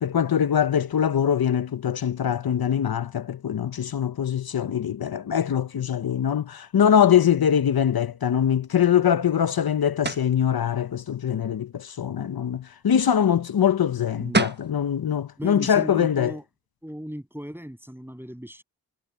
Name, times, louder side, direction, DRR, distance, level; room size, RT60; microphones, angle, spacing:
voice 1, 0.0-16.3, left 9 dB, 70° left, 0.9 m, -23 dB
sound 1, 10.0-10.3 14.0-14.1 14.3-14.7, right 3 dB, 25° right, 1.2 m, -25 dB
voice 2, 14.2-14.5 15.4-16.5 16.8-18.6, equal, 5° right, 7.7 m, -36 dB
cardioid pair, 40°, 38 cm